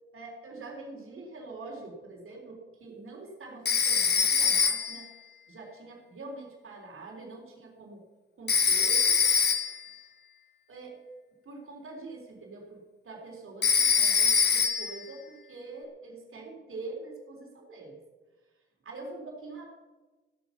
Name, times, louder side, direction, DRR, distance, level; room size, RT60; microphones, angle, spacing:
voice 1, 0.1-5.1 5.5-8.0 8.4-9.2 10.7-11.0 11.4-18.0 18.8-19.7, right 3 dB, 85° right, -1 dB, 3.7 m, -44 dB
Telephone, 3.6-5.1 8.5-9.9 13.6-15.0, left 5 dB, 55° left, 1.0 m, -24 dB
15.5 x 8.6 x 7.1 m, 1.2 s
wide cardioid pair, 160°, 21 cm